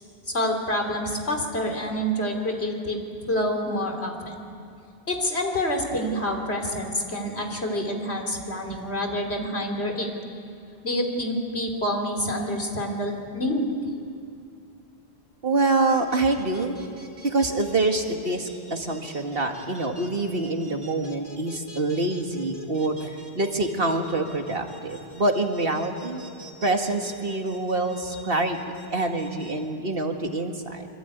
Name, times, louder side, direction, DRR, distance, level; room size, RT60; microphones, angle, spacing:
voice 1, 0.3-3.0 3.3-4.4 5.1-10.1 10.8-13.6, left 1 dB, 80° left, 4 dB, 3.6 m, -27 dB
voice 2, 15.4-16.8 17.2-26.2 26.6-28.6 28.9-30.9, right 2 dB, 60° right, 4 dB, 2.2 m, -26 dB
sound 1, 15.9-29.5, equal, 85° right, 3.5 m, -45 dB
25.5 x 25.0 x 9.3 m, 2.5 s
omnidirectional pair, 1.1 m